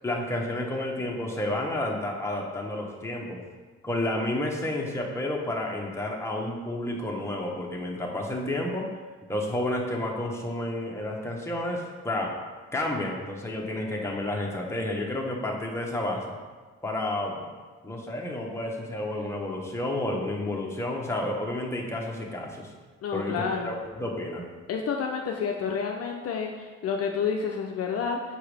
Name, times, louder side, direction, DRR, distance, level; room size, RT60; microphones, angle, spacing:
voice 1, 0.0-3.4 3.8-8.9 9.3-12.3 12.7-16.4 16.8-17.5 17.8-22.7 23.1-24.5, left 1 dB, 10° left, -1 dB, 1.1 m, -30 dB
voice 2, 23.0-23.7 24.7-28.2, left 6 dB, 50° left, 1 dB, 0.6 m, -29 dB
6.2 x 4.6 x 3.4 m, 1.4 s
cardioid pair, 90°, 30 cm